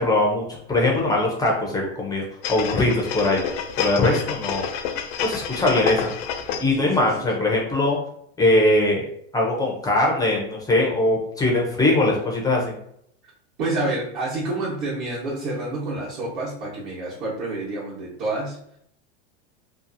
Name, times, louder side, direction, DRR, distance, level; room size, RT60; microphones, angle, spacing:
voice 1, 0.0-2.2 2.5-3.4 3.8-4.7 5.2-6.1 6.6-8.0 8.4-9.0 9.3-12.7, left 2 dB, 10° left, -1 dB, 0.4 m, -21 dB
sound 1, 2.4-6.8 7.2-7.3, left 7 dB, 65° left, 0.5 m, -29 dB
voice 2, 6.7-7.3 13.6-18.6, right 2 dB, 50° right, -8 dB, 1.0 m, -28 dB
2.6 x 2.4 x 2.5 m, 0.68 s
supercardioid pair, 135°, 33 cm